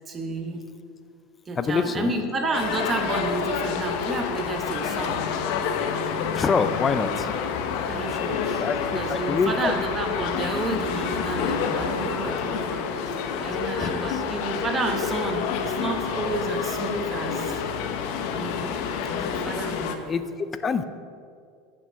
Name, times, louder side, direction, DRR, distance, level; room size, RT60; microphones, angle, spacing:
voice 1, 0.1-0.7 1.5-5.2 7.9-12.9 13.4-17.6 18.3-18.7 19.0-20.1, right 2 dB, 20° right, 3 dB, 1.1 m, -30 dB
voice 2, 1.6-2.1 6.3-7.3 8.6-8.8 9.1-9.7 13.8-14.1 20.1-20.2 20.6-20.8, left 5 dB, 20° left, 11 dB, 0.4 m, -25 dB
sound 1, 2.5-20.0, left 6 dB, 55° left, 0.9 m, -28 dB
9.1 x 6.0 x 7.5 m, 2.3 s
supercardioid pair, 160°, 0 cm